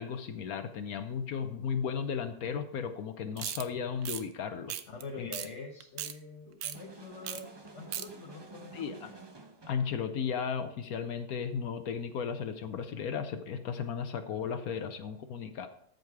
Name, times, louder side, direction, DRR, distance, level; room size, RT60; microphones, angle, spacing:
voice 1, 0.0-4.8 5.2-5.3 8.7-9.1 9.7-15.7, left 6 dB, 70° left, 8 dB, 1.2 m, -35 dB
sound 1, 3.4-3.6 4.0-4.2 4.7-5.0 5.3-5.5 5.8-6.1 6.6-6.8 7.2-7.4 7.7-8.1, right 10 dB, 70° right, 1.2 m, -36 dB
voice 2, 4.9-9.1, left 4 dB, 50° left, 2 dB, 1.2 m, -45 dB
sound 2, 6.7-9.9, right 3 dB, 25° right, 0.6 m, -50 dB
13.5 x 5.2 x 4.7 m, 0.71 s
omnidirectional pair, 1.7 m